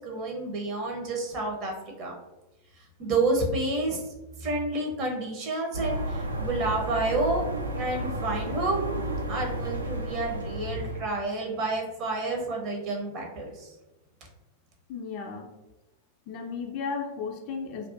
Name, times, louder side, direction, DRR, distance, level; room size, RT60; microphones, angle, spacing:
voice 1, 0.0-1.7 2.0-2.1 3.0-4.0 4.4-7.4 7.7-8.8 9.3-13.7, right 2 dB, 40° right, 0 dB, 0.7 m, -29 dB
sound 1, 5.7-11.0, right 1 dB, 80° right, 0.3 m, -32 dB
voice 2, 14.9-15.5 16.3-17.9, left 5 dB, 45° left, 3 dB, 0.4 m, -34 dB
2.6 x 2.2 x 2.4 m, 0.99 s
figure-of-eight pair, 90°, 0 cm